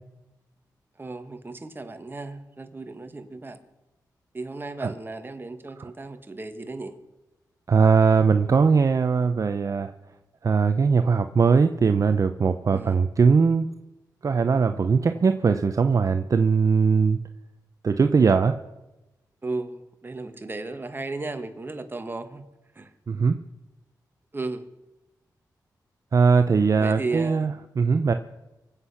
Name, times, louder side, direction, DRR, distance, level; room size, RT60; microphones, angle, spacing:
voice 1, 1.0-3.6 4.3-6.9 12.7-13.0 19.4-22.4 22.7-22.9 24.3-24.6 26.7-27.5, right 3 dB, 30° right, 8 dB, 1.6 m, -35 dB
voice 2, 7.7-9.9 10.4-13.7 14.2-17.2 17.8-18.6 23.1-23.4 26.1-28.1, right 5 dB, 50° right, 9 dB, 0.7 m, -20 dB
24.5 x 8.2 x 5.8 m, 0.99 s
cardioid pair, 70°, 7 cm